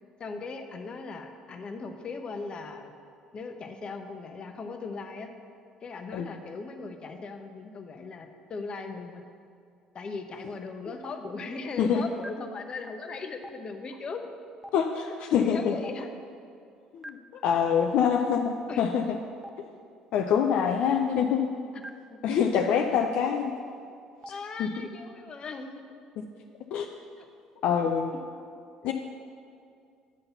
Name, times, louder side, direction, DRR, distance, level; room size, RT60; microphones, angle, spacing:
voice 1, 0.2-2.9 3.3-5.3 5.8-9.2 9.9-14.2 15.3-16.3 18.7-19.0 21.1-21.2 21.7-21.9 22.7-23.1 24.3-25.8 27.2-27.3 28.1-28.2, left 4 dB, 45° left, 6 dB, 0.8 m, -38 dB
Stream, 11.0-11.1 12.2-12.3 13.4-13.5 14.6-14.7 15.8-15.9 17.0-17.1 18.2-18.3 19.4-19.5 20.6-20.7 21.8-21.9 23.0-23.1 24.2-24.3, equal, 15° right, 0.5 m, -42 dB
voice 2, 14.7-15.8 16.9-19.0 19.6-19.7 20.1-21.4 22.2-23.5 24.6-24.7 26.7-26.9 27.6-28.1 28.8-28.9, left 7 dB, 65° left, 3 dB, 0.5 m, -25 dB
9.7 x 4.0 x 6.8 m, 2.3 s
hypercardioid pair, 70°, 2 cm